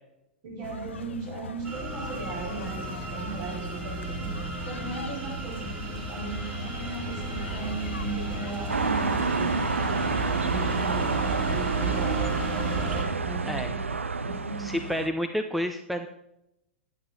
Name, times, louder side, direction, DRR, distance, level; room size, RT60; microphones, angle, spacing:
voice 1, 0.4-4.3 4.6-10.0 10.4-12.2 13.2-13.8 14.2-14.9, right 4 dB, 45° right, -2 dB, 4.8 m, -37 dB
sound 1, 0.6-11.6, left 7 dB, 75° left, 0.6 m, -42 dB
sound 2, 1.6-13.1, right 2 dB, 20° right, 3.4 m, -34 dB
sound 3, 8.7-15.1, right 4 dB, 85° right, 0.5 m, -28 dB
voice 2, 14.6-16.1, equal, ahead, 6 dB, 0.7 m, -29 dB
11.0 x 9.2 x 4.2 m, 0.83 s
figure-of-eight pair, 100°, 7 cm